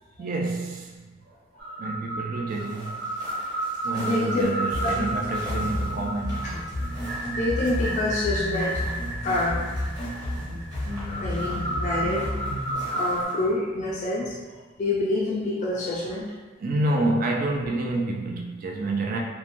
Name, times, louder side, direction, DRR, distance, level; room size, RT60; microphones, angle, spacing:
voice 1, 0.2-3.2 3.8-6.6 12.7-12.9 16.6-19.2, right 2 dB, 45° right, 1 dB, 0.3 m, -29 dB
sound 1, 1.6-13.2, right 1 dB, 60° right, 0.9 m, -32 dB
sound 2, 2.5-13.5, equal, 20° right, 0.8 m, -45 dB
voice 2, 4.0-4.5 4.8-5.1 7.3-8.7 9.2-9.7 11.1-12.3 12.7-14.4 14.8-16.3, left 2 dB, 40° left, -6 dB, 0.4 m, -27 dB
sound 3, 4.7-12.7, left 1 dB, 85° left, 0.6 m, -32 dB
3.0 x 2.1 x 2.5 m, 1.3 s
head